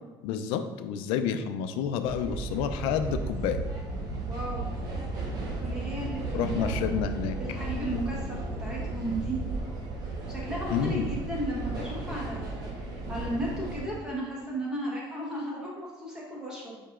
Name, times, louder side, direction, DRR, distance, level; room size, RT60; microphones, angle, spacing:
voice 1, 0.2-3.6 6.3-7.4 10.7-11.1, left 8 dB, 75° left, 8 dB, 0.3 m, -29 dB
sound 1, 2.0-13.9, right 2 dB, 45° right, 0.8 m, -34 dB
voice 2, 4.3-4.7 5.6-6.9 7.4-9.4 10.3-12.7 13.1-16.8, right 1 dB, 10° right, -5 dB, 1.1 m, -35 dB
4.8 x 4.4 x 2.4 m, 1.2 s
cardioid pair, 170°, 9 cm